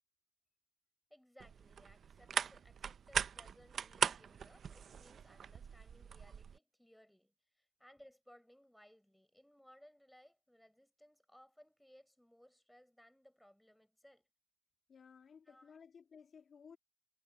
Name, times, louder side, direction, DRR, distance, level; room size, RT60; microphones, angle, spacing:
voice 1, 1.1-14.3 15.4-15.8, equal, 5° left, 7.0 m, -64 dB
sound 1, 1.4-6.6, right 7 dB, 55° right, 0.8 m, -40 dB
voice 2, 14.9-16.8, left 6 dB, 50° left, 2.4 m, -58 dB
cardioid pair, 90°, 0 cm